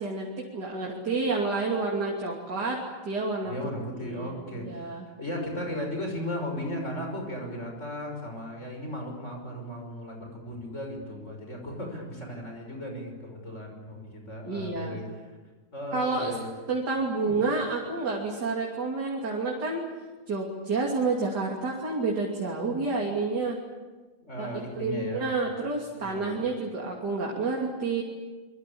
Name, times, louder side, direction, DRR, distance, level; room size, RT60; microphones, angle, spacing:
voice 1, 0.0-3.7 4.0-5.1 14.5-15.0 15.9-16.3 16.7-19.8 20.3-23.6 24.4-24.5 24.8-28.0, right 3 dB, 65° right, -1 dB, 3.6 m, -29 dB
voice 2, 3.4-15.2 15.7-16.5 17.1-17.3 24.2-25.3 25.9-26.4, equal, 40° left, 2 dB, 6.2 m, -36 dB
26.5 x 23.0 x 8.7 m, 1.3 s
omnidirectional pair, 1.9 m